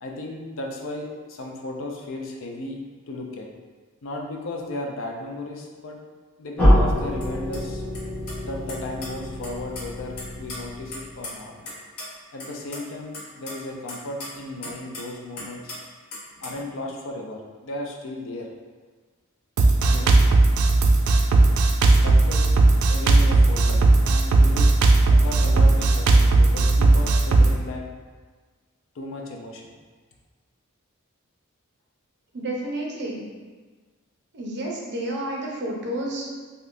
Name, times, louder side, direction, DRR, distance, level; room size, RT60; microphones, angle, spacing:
voice 1, 0.0-2.8 3.1-3.5 4.0-6.0 6.4-7.9 8.4-11.5 12.3-15.7 16.4-18.5 19.8-20.1 21.9-22.4 22.9-24.7 25.1-27.8 28.9-29.7, left 2 dB, 60° left, 0 dB, 0.5 m, -35 dB
sound 1, 6.6-11.4, equal, 10° left, 0.8 m, -25 dB
sound 2, 7.2-7.3 7.5-7.6 7.9-8.0 8.3-9.1 9.4-9.8 10.2-11.7 12.0-12.1 12.4-12.8 13.1-15.1 15.4-15.8 16.1-16.6, left 2 dB, 85° left, 0.8 m, -37 dB
Drum kit, 19.6-27.5, right 2 dB, 90° right, 0.4 m, -16 dB
voice 2, 32.3-33.3 34.3-36.3, right 1 dB, 55° right, -2 dB, 0.6 m, -30 dB
3.3 x 2.7 x 2.5 m, 1.4 s
head